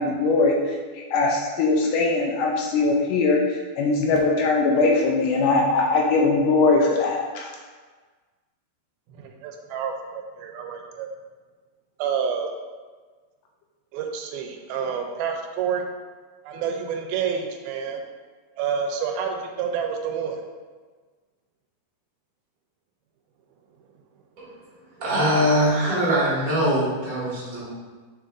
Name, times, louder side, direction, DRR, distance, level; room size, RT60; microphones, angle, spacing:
voice 1, 0.0-7.5, left 3 dB, 90° left, 0 dB, 1.9 m, -21 dB
voice 2, 9.1-11.1 12.0-12.5 13.9-15.8 16.4-18.0 18.6-20.4, right 7 dB, 85° right, 3 dB, 2.5 m, -28 dB
voice 3, 25.0-27.7, equal, 30° right, -7 dB, 1.7 m, -22 dB
6.8 x 6.3 x 2.6 m, 1.4 s
omnidirectional pair, 4.3 m